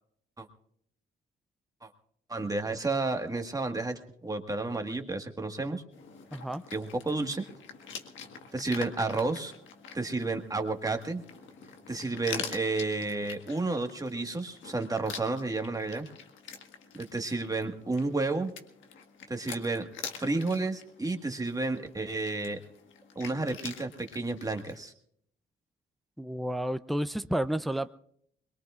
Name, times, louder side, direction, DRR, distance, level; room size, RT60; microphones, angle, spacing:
voice 1, 2.3-5.8 6.7-7.4 8.5-9.5 9.9-11.2 11.9-16.1 16.9-18.5 19.3-19.9 20.2-22.6 23.1-24.9, right 3 dB, 20° right, 5 dB, 1.7 m, -31 dB
sound 1, 5.9-24.8, left 6 dB, 75° left, 1.6 m, -45 dB
voice 2, 6.3-6.6 26.2-27.9, right 1 dB, ahead, 10 dB, 0.6 m, -31 dB
22.5 x 22.0 x 2.5 m, 0.66 s
cardioid pair, 90°, 20 cm